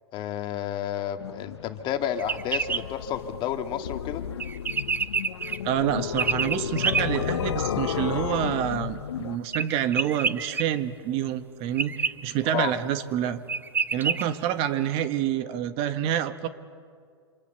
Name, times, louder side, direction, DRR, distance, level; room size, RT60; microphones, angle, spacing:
voice 1, 0.1-4.2 12.5-12.7, left 10 dB, 35° left, 7 dB, 1.9 m, -31 dB
sound 1, 1.2-9.4, left 9 dB, 80° left, 0.8 m, -33 dB
sound 2, 2.2-2.8 4.4-5.6 6.2-7.0 9.5-10.6 11.8-12.1 13.1-13.2 13.5-14.2, right 5 dB, 15° right, 0.7 m, -27 dB
voice 2, 5.6-13.4 13.9-16.5, right 10 dB, 40° right, 11 dB, 1.5 m, -27 dB
27.0 x 26.5 x 8.1 m, 2.1 s
hypercardioid pair, 120°, 14 cm